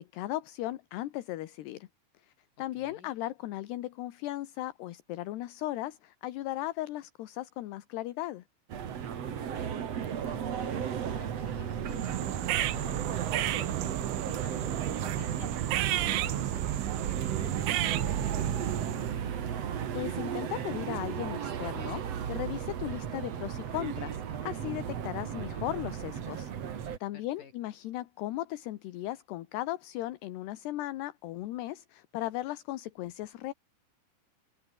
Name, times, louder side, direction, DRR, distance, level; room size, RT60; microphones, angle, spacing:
voice 1, 0.0-1.9 2.6-8.4 19.9-26.5 27.0-33.5, left 15 dB, 70° left, 3.1 m, -37 dB
voice 2, 2.8-3.1 9.3-19.1 27.1-27.5, left 6 dB, 45° left, 5.4 m, -50 dB
sound 1, 8.7-27.0, right 8 dB, 50° right, 2.1 m, -35 dB
sound 2, 11.9-19.2, right 14 dB, 85° right, 4.0 m, -32 dB
open air
omnidirectional pair, 5.4 m